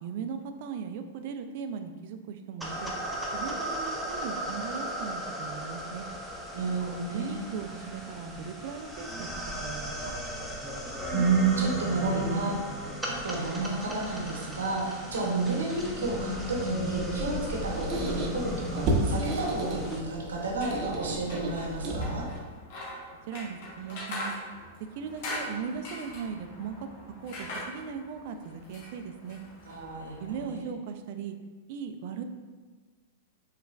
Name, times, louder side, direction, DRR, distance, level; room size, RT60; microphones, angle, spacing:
voice 1, 0.0-2.9 3.3-6.1 7.1-9.3 9.6-9.9 23.3-24.3 24.9-29.4 30.2-31.4 31.7-32.2, right 6 dB, 55° right, 7 dB, 0.4 m, -38 dB
sound 1, 2.6-20.0, equal, 5° right, 0.6 m, -36 dB
voice 2, 6.5-7.5 11.1-12.6 13.1-22.3 29.7-30.1 30.4-30.7, right 3 dB, 75° right, -2 dB, 0.8 m, -30 dB
Squeak, 17.2-22.4, right 1 dB, 40° right, 0.7 m, -32 dB
sound 2, 20.4-30.5, left 1 dB, 55° left, 1.2 m, -42 dB
4.9 x 3.2 x 2.4 m, 1.4 s
hypercardioid pair, 100°, 0 cm